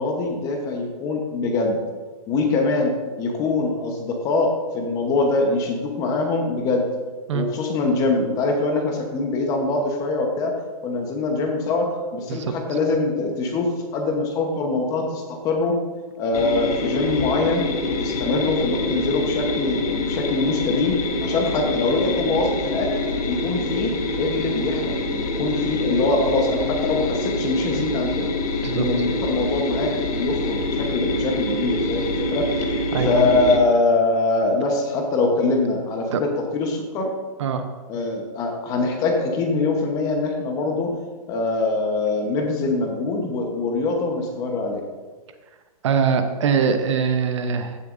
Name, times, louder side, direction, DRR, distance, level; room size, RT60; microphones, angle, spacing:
voice 1, 0.0-1.8 2.3-6.9 7.3-10.5 10.8-15.8 16.2-22.9 23.3-28.3 28.7-37.1 37.9-40.9 41.3-44.8, left 3 dB, 20° left, 3 dB, 1.0 m, -23 dB
sound 1, 16.3-33.6, left 1 dB, 75° left, 1.4 m, -26 dB
voice 2, 32.9-33.3 36.1-36.2 37.4-37.6 45.8-47.8, right 6 dB, 50° right, 8 dB, 0.8 m, -22 dB
15.5 x 6.7 x 2.6 m, 1.4 s
hypercardioid pair, 165°, 19 cm